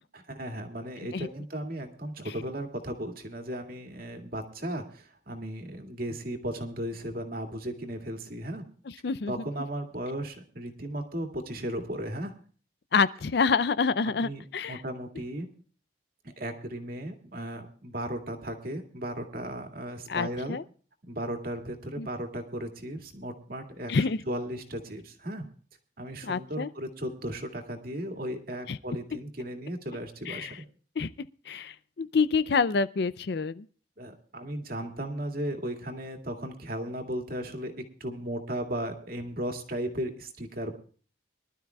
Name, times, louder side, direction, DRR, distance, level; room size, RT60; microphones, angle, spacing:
voice 1, 0.1-8.7 9.3-12.4 14.1-15.5 16.2-20.6 21.0-23.9 24.3-25.5 26.0-30.6 34.0-40.7, right 1 dB, 50° right, 2.2 m, -36 dB
voice 2, 8.9-9.3 12.9-14.8 20.1-20.6 22.0-22.1 23.9-24.2 26.2-26.7 28.7-28.8 30.3-30.6 31.0-31.1 31.5-33.7, left 5 dB, 60° left, 0.5 m, -27 dB
24.5 x 12.0 x 2.3 m
head